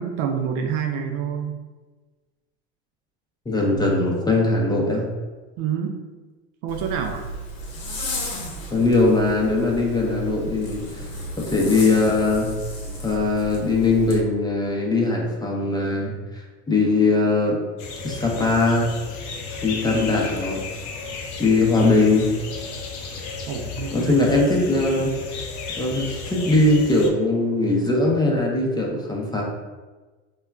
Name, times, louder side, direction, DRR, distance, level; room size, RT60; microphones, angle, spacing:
voice 1, 0.0-1.5 5.6-6.0 6.6-7.2 23.5-24.3, right 7 dB, 60° right, 4 dB, 0.4 m, -27 dB
voice 2, 3.5-5.1 8.7-11.1 11.5-12.5 13.0-17.6 18.0-18.9 19.6-20.6 21.4-22.3 23.9-25.1 25.8-29.4, left 2 dB, 10° left, -2 dB, 0.5 m, -20 dB
Zipper (clothing), 6.7-14.2, equal, 45° left, 0.8 m, -33 dB
sound 1, 17.8-27.1, left 4 dB, 90° left, 0.5 m, -34 dB
3.5 x 2.2 x 2.2 m, 1.3 s
hypercardioid pair, 95°, 34 cm